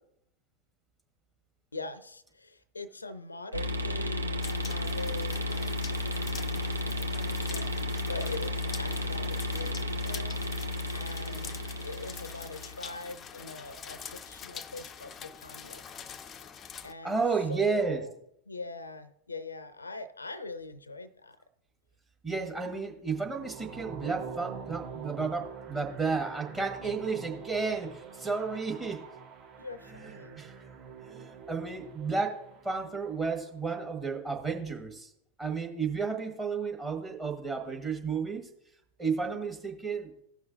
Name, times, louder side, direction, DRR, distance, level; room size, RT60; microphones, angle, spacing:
voice 1, 1.7-6.0 6.8-10.4 10.9-11.5 11.8-15.8 16.8-17.2 17.5-18.1 18.5-21.4 29.6-30.4, left 3 dB, 80° left, 15 dB, 0.5 m, -42 dB
sound 1, 3.5-13.0, left 1 dB, 80° right, 0.7 m, -33 dB
sound 2, 4.4-16.9, left 7 dB, 25° left, 0.4 m, -45 dB
voice 2, 17.0-18.0 22.2-29.0 30.4-30.5 31.0-35.1 35.4-38.5 39.0-40.1, right 4 dB, 15° right, 1 dB, 1.5 m, -32 dB
sound 3, 23.1-33.2, right 6 dB, 40° right, 1.3 m, -45 dB
16.5 x 6.2 x 2.5 m, 0.77 s
figure-of-eight pair, 90°, 0 cm